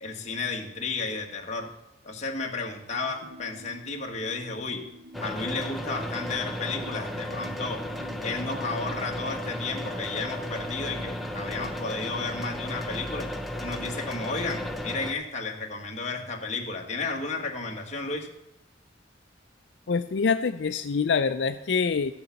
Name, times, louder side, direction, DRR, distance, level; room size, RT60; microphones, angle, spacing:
voice 1, 0.0-1.7 2.0-4.8 5.2-7.8 8.2-13.3 13.6-18.3, left 3 dB, 40° left, 1 dB, 1.6 m, -33 dB
sound 1, 2.9-12.3, equal, 70° right, 0.8 m, -49 dB
sound 2, 5.1-15.1, left 1 dB, ahead, 0.8 m, -34 dB
voice 2, 19.9-22.1, left 5 dB, 70° left, 10 dB, 0.5 m, -25 dB
13.0 x 6.9 x 7.0 m, 0.87 s
head